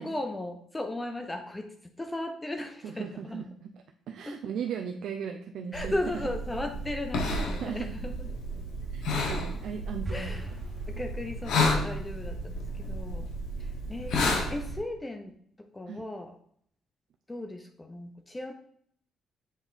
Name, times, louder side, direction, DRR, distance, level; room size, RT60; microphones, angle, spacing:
voice 1, 0.0-3.4 4.3-4.4 5.7-8.3 10.1-10.5 10.9-13.3 13.6-16.3 17.3-18.5, left 1 dB, 15° left, 5 dB, 0.7 m, -36 dB
voice 2, 2.8-3.7 4.1-6.2 7.3-8.0 8.9-10.4 15.9-16.0, right 7 dB, 75° right, 4 dB, 0.5 m, -37 dB
sound 1, 5.7-14.8, left 2 dB, 80° left, 1.3 m, -32 dB
sound 2, 10.0-11.7, right 2 dB, 20° right, 2.0 m, -40 dB
7.4 x 3.4 x 4.1 m, 0.67 s
cardioid pair, 90°, 0 cm